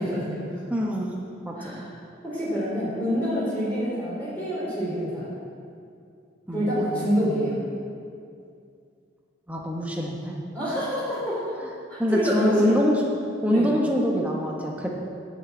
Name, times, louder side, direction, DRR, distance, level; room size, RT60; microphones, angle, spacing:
voice 1, 0.0-0.6 1.6-1.9 2.2-5.4 6.5-7.6 10.5-11.4 11.9-12.8 13.5-13.7, equal, 10° left, -9 dB, 3.4 m, -27 dB
voice 2, 0.7-1.9 6.5-7.2 9.5-10.4 12.0-13.1 13.4-14.9, equal, 10° right, -2 dB, 1.1 m, -25 dB
11.0 x 6.4 x 8.5 m, 2.4 s
head